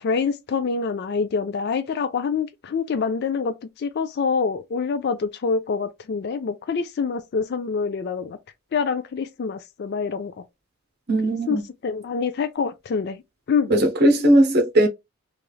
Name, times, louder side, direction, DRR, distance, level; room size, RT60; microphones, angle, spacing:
voice 1, 0.0-8.4 8.7-10.3 11.5-13.2 13.5-13.7, left 5 dB, 50° left, 0.3 m, -26 dB
voice 2, 11.1-11.6 13.7-14.9, right 1 dB, 45° right, 0.8 m, -18 dB
3.1 x 2.4 x 2.3 m
head